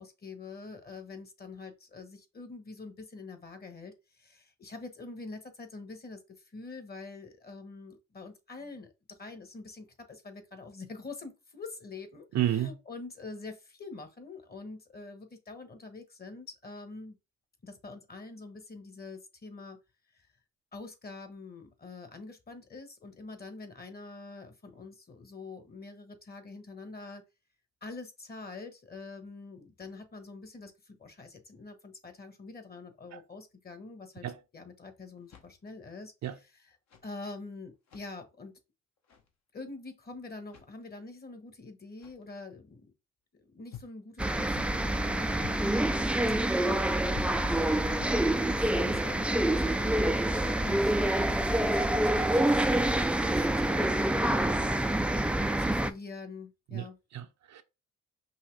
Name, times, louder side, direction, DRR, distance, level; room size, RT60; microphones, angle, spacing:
voice 1, 0.0-6.2 6.5-17.2 17.6-19.8 20.1-20.3 20.7-27.2 27.8-34.2 34.5-36.7 37.0-38.6 39.5-42.9 43.4-46.2 47.3-55.0 55.6-57.0, left 3 dB, 30° left, 1.2 m, -45 dB
voice 2, 12.3-12.7 33.1-33.2 34.2-34.3 36.2-36.3 56.7-56.9 57.1-57.6, right 12 dB, 60° right, 0.7 m, -31 dB
sound 1, 35.2-35.8 36.7-37.1 37.7-38.1 39.0-39.3 40.4-40.8 41.9-42.3 43.7-44.0 44.5-44.9 45.4-45.7 46.3-46.7 47.1-47.4 48.0-48.2 48.8-49.2, left 10 dB, 60° left, 1.2 m, -49 dB
sound 2, 44.2-55.9, right 1 dB, 5° right, 0.3 m, -27 dB
5.6 x 2.8 x 3.2 m
cardioid pair, 90°, 30 cm